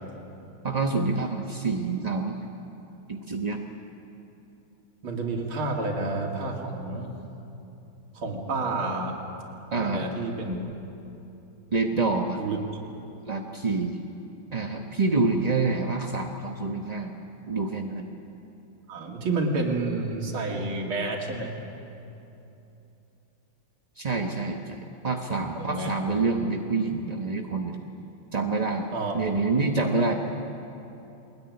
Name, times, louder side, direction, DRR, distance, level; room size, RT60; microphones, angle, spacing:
voice 1, 0.6-2.4 3.1-3.6 9.7-10.0 11.7-12.4 13.3-14.0 14.5-17.1 17.5-18.1 24.0-27.8 28.3-28.9 29.1-30.1, right 3 dB, 35° right, 2 dB, 0.7 m, -27 dB
voice 2, 5.0-7.1 8.2-9.2 9.7-10.6 12.4-12.6 18.9-21.5 25.6-25.9 28.9-29.1 29.9-30.2, right 3 dB, 70° right, 0 dB, 3.4 m, -29 dB
22.5 x 21.0 x 9.7 m, 2.9 s
omnidirectional pair, 2.4 m